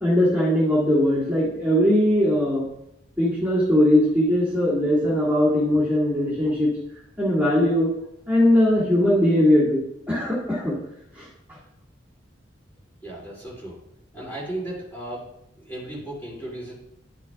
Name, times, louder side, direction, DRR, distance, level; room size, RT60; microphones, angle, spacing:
voice 1, 0.0-2.6 3.2-6.7 7.2-7.9 8.3-9.8 10.1-10.7 11.1-11.3, left 1 dB, 10° right, -8 dB, 2.0 m, -20 dB
voice 2, 13.0-13.8 14.1-15.2 15.6-16.7, right 1 dB, 10° left, -5 dB, 2.5 m, -35 dB
10.5 x 6.1 x 2.4 m, 0.79 s
head